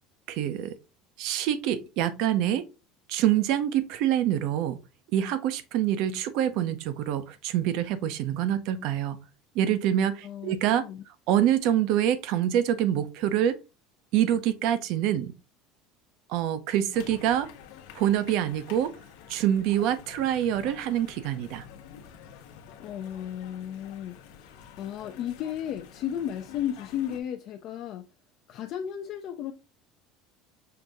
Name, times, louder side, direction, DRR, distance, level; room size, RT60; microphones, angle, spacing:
voice 1, 0.3-0.7 1.2-2.7 3.1-4.8 5.1-9.2 9.5-10.8 11.3-13.6 14.1-15.3 16.3-17.5 17.9-18.9 19.3-21.7, right 11 dB, 60° right, 0.6 m, -26 dB
voice 2, 10.2-11.0 22.8-28.1 28.5-29.5, left 10 dB, 45° left, 0.4 m, -34 dB
sound 1, 16.9-27.2, left 8 dB, 80° left, 0.8 m, -48 dB
5.7 x 2.6 x 3.4 m
cardioid pair, 160°, 0 cm